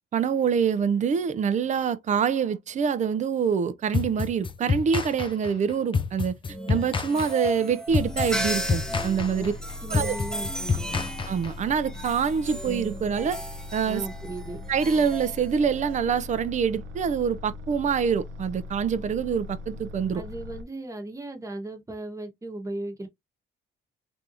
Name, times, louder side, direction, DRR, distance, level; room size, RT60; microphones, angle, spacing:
voice 1, 0.1-6.3 6.7-9.5 9.9-10.2 11.3-13.4 13.7-14.0 14.7-20.2, right 6 dB, 35° right, 0.4 m, -25 dB
sound 1, 3.9-11.7, left 5 dB, 25° left, 0.4 m, -28 dB
sound 2, 6.5-16.0, equal, 5° left, 0.8 m, -35 dB
sound 3, 7.9-20.6, left 2 dB, 85° right, 0.7 m, -40 dB
voice 2, 9.8-11.0 13.9-14.6 20.1-23.1, right 2 dB, 15° right, 1.0 m, -36 dB
3.4 x 2.6 x 2.7 m
cardioid pair, 90°, 20 cm